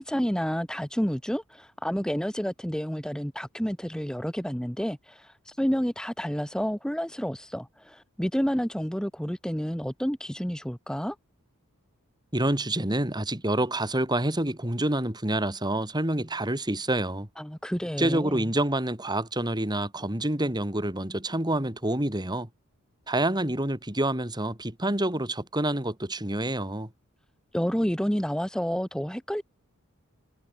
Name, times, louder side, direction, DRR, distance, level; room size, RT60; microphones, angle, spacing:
voice 1, 0.0-11.1 17.4-18.5 27.5-29.4, equal, 5° left, 1.3 m, -30 dB
voice 2, 12.3-17.3 18.0-22.5 23.1-26.9, right 1 dB, 20° right, 3.1 m, -27 dB
head